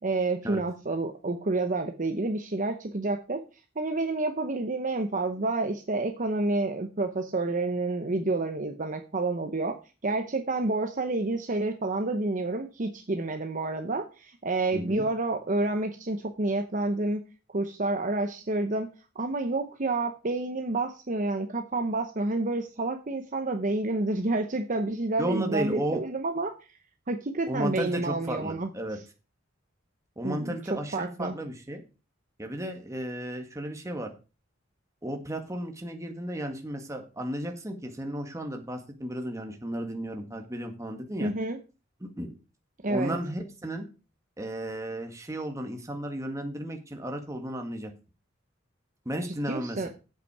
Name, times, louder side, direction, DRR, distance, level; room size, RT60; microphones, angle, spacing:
voice 1, 0.0-3.4 3.8-9.7 10.0-17.2 17.5-18.9 19.2-26.5 27.1-28.7 30.2-30.6 30.9-31.4 41.2-41.6 42.8-43.2 49.3-49.9, right 2 dB, 40° right, 5 dB, 0.9 m, -29 dB
voice 2, 14.7-15.1 25.2-26.0 27.5-29.0 30.2-31.8 32.4-34.1 35.0-41.3 42.0-42.4 42.9-43.9 44.4-47.9 49.1-49.9, right 1 dB, 15° right, 3 dB, 1.7 m, -34 dB
8.3 x 8.2 x 4.8 m, 0.32 s
head